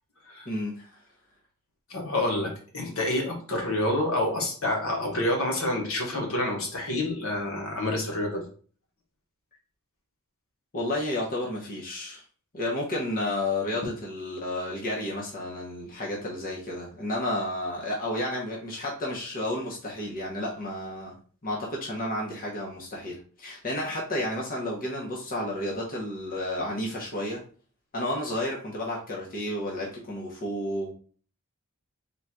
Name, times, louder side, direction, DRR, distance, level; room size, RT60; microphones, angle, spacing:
voice 1, 0.4-0.9 10.7-12.2 12.5-21.2 21.4-27.4 27.9-30.9, left 1 dB, 40° left, -2 dB, 0.9 m, -31 dB
voice 2, 1.9-8.4, left 1 dB, 65° left, 0 dB, 1.2 m, -28 dB
3.9 x 2.4 x 4.4 m, 0.42 s
head